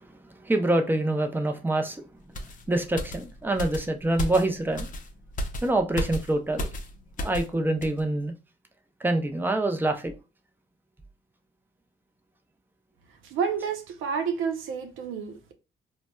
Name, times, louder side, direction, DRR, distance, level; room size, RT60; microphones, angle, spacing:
voice 1, 0.4-2.0 2.7-4.9 5.6-6.7 7.2-8.3 9.0-10.1, right 2 dB, 10° right, 0.5 m, -25 dB
sound 1, 2.3-7.5 7.8-8.0, left 1 dB, 40° left, 0.6 m, -34 dB
voice 2, 13.2-15.5, right 6 dB, 85° right, 0.6 m, -30 dB
4.0 x 2.1 x 2.2 m
cardioid pair, 90°, 20 cm